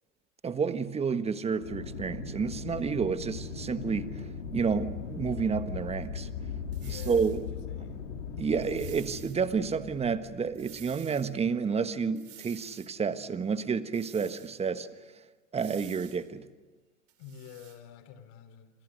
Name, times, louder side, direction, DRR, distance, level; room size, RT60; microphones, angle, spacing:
voice 1, 0.4-4.1 4.5-6.3 6.9-7.4 8.4-14.9 15.5-16.5, right 5 dB, 15° right, 11 dB, 1.3 m, -30 dB
Aircraft, 1.6-11.1, left 6 dB, 70° left, 4.0 m, -39 dB
voice 2, 6.7-7.4 7.7-8.1 17.2-18.8, left 8 dB, 50° left, 11 dB, 3.6 m, -48 dB
sound 1, 6.7-7.4 8.6-9.4 10.5-11.3 12.1-12.9 13.9-14.6 15.6-16.2 17.1-17.8, right 13 dB, 35° right, 3.5 m, -51 dB
28.5 x 26.5 x 6.5 m, 1.2 s
hypercardioid pair, 100°, 38 cm